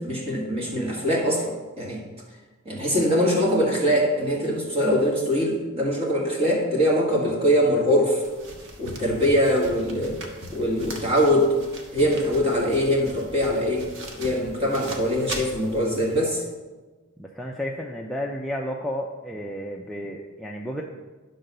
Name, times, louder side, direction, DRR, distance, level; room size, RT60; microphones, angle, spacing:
voice 1, 0.0-2.0 2.7-8.2 8.8-10.2 10.5-11.5 11.9-13.9 14.1-16.4, equal, 25° right, -2 dB, 1.8 m, -22 dB
sound 1, 8.2-16.2, right 1 dB, 75° right, 1.3 m, -40 dB
voice 2, 17.2-20.8, equal, ahead, -2 dB, 0.5 m, -32 dB
10.5 x 3.9 x 6.6 m, 1.3 s
head